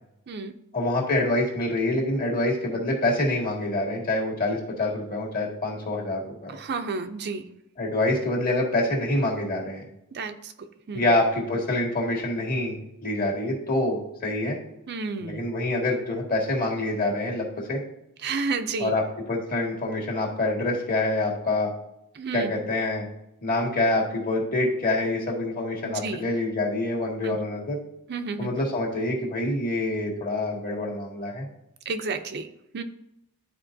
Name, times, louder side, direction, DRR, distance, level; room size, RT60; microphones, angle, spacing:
voice 1, 0.7-6.6 7.8-9.9 10.9-14.6 15.2-17.8 18.8-21.7 22.3-23.1 23.4-27.8 28.4-31.5, left 2 dB, 40° left, -2 dB, 1.8 m, -26 dB
voice 2, 6.5-7.5 10.1-10.5 10.9-11.0 14.9-15.4 18.2-18.9 22.2-22.5 25.8-26.2 27.2-27.4 28.1-28.5 31.9-32.5 32.7-32.8, right 4 dB, 50° right, 8 dB, 0.5 m, -31 dB
11.5 x 4.4 x 2.6 m, 0.84 s
head